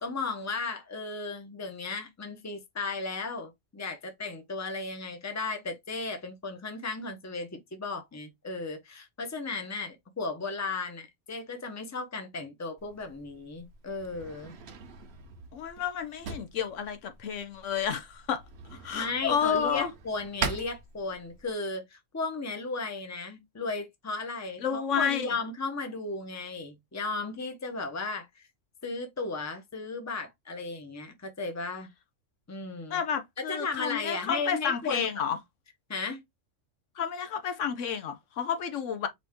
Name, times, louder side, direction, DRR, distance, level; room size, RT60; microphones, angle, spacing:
voice 1, 0.0-14.5 18.9-28.3 28.8-31.9 32.5-33.0 33.5-35.1 35.9-36.2, left 3 dB, 15° left, 0.8 m, -35 dB
Drawer open or close, 12.8-21.5, right 5 dB, 55° right, 1.0 m, -41 dB
voice 2, 15.5-18.4 18.7-19.9 24.6-25.3 32.9-35.4 37.0-39.1, left 7 dB, 70° left, 1.0 m, -30 dB
5.1 x 2.7 x 3.5 m
omnidirectional pair, 1.4 m